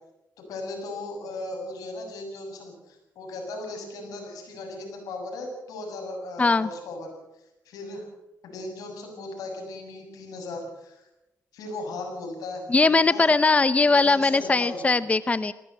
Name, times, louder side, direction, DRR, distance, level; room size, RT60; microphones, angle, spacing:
voice 1, 0.5-7.1 7.7-8.1 8.4-11.1 11.5-13.3 13.8-15.0, left 2 dB, 90° left, 3 dB, 7.1 m, -37 dB
voice 2, 6.4-6.7 12.7-15.5, left 3 dB, 20° left, 15 dB, 0.8 m, -20 dB
20.0 x 17.0 x 7.8 m, 0.93 s
cardioid pair, 85°, 6 cm